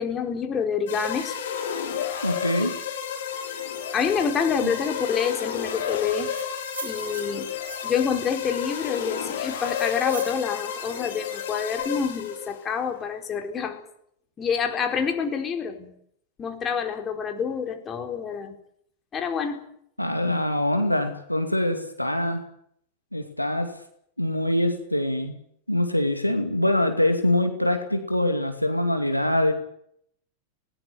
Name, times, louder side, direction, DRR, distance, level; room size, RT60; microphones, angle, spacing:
voice 1, 0.0-1.4 2.5-2.7 3.9-6.3 6.8-7.5 7.8-13.8 14.4-15.9 16.4-18.5 19.1-19.6, left 6 dB, 25° left, 5 dB, 4.4 m, -27 dB
sound 1, 0.9-12.6, left 8 dB, 60° left, 5.6 m, -31 dB
voice 2, 2.2-2.8 4.6-4.7 20.0-22.4 23.1-23.7 24.2-25.3 25.7-29.5, left 1 dB, 90° left, 6 dB, 2.5 m, -24 dB
sound 2, 6.1-8.1 8.7-10.4, right 6 dB, 65° right, 4.3 m, -41 dB
20.0 x 19.0 x 9.8 m, 0.69 s
figure-of-eight pair, 90°, 0 cm